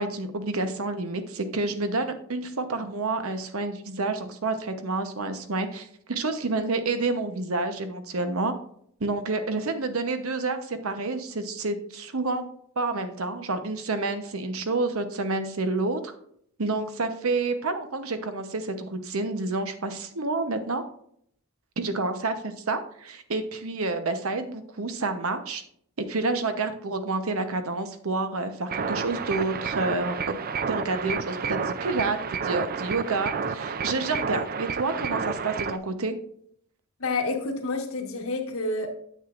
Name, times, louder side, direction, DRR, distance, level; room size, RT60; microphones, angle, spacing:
voice 1, 0.0-8.5 9.0-12.5 12.8-16.1 16.6-20.8 21.8-25.6 26.1-30.4 30.7-36.2, right 3 dB, 85° right, 8 dB, 0.9 m, -29 dB
sound 1, 28.7-35.8, right 5 dB, 45° right, 0.4 m, -30 dB
voice 2, 37.0-38.9, left 3 dB, 75° left, 3 dB, 1.4 m, -29 dB
9.1 x 7.6 x 2.5 m, 0.66 s
head